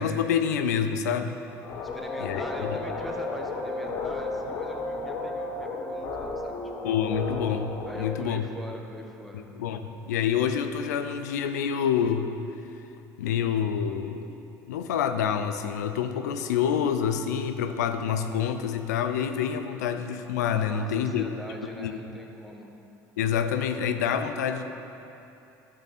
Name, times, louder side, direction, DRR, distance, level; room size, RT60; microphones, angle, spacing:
voice 1, 0.0-1.4 2.2-2.4 6.8-8.4 9.3-12.3 13.2-14.3 14.7-21.3 21.8-21.9 23.2-24.6, left 8 dB, 90° left, 8 dB, 0.5 m, -27 dB
sound 1, 1.6-8.2, left 3 dB, 60° left, 1.7 m, -33 dB
voice 2, 1.9-7.0 7.9-9.4 20.6-22.7, equal, ahead, 0 dB, 1.4 m, -42 dB
12.0 x 6.4 x 4.2 m, 2.8 s
hypercardioid pair, 75°, 9 cm